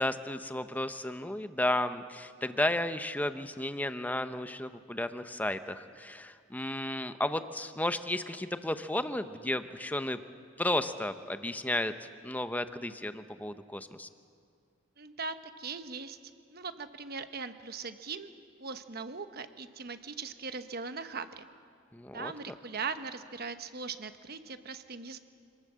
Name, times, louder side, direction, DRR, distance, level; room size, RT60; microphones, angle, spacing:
voice 1, 0.0-10.2 10.6-11.9 12.2-14.1 21.9-22.3, left 1 dB, 10° left, 10 dB, 0.8 m, -33 dB
voice 2, 15.0-16.2 16.5-18.3 18.6-21.5 22.1-25.2, right 4 dB, 55° right, 9 dB, 1.1 m, -40 dB
26.0 x 19.0 x 7.5 m, 2.2 s
head